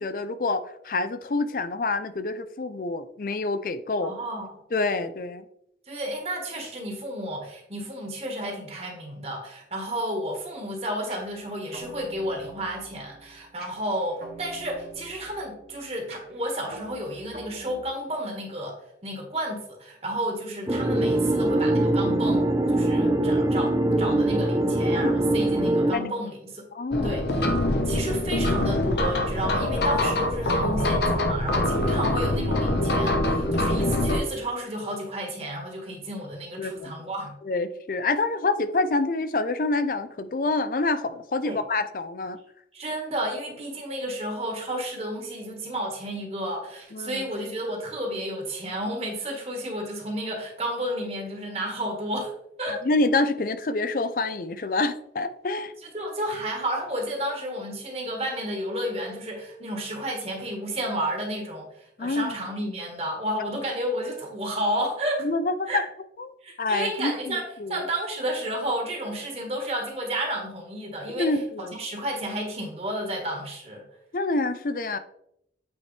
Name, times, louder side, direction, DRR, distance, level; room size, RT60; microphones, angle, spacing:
voice 1, 0.0-4.1 4.7-5.4 25.0-25.1 25.9-26.1 26.7-27.2 31.8-32.1 36.6-36.9 37.4-42.4 46.9-47.2 52.8-55.7 62.0-62.3 65.2-65.8 66.6-67.9 71.2-71.8 74.1-75.0, left 3 dB, 50° left, 12 dB, 0.5 m, -27 dB
voice 2, 4.0-4.6 5.9-26.6 27.0-27.2 27.8-37.3 41.4-41.6 42.7-52.3 52.6-52.8 55.9-61.7 62.0-65.3 65.7-65.8 66.4-67.4 67.7-73.8, right 1 dB, 35° right, 1 dB, 1.5 m, -31 dB
sound 1, 11.1-17.8, right 2 dB, 60° right, 1.6 m, -45 dB
sound 2, 20.7-25.9, right 1 dB, 20° right, 0.6 m, -22 dB
sound 3, 26.9-34.2, left 1 dB, 70° left, 0.9 m, -24 dB
8.5 x 4.5 x 3.3 m, 0.77 s
head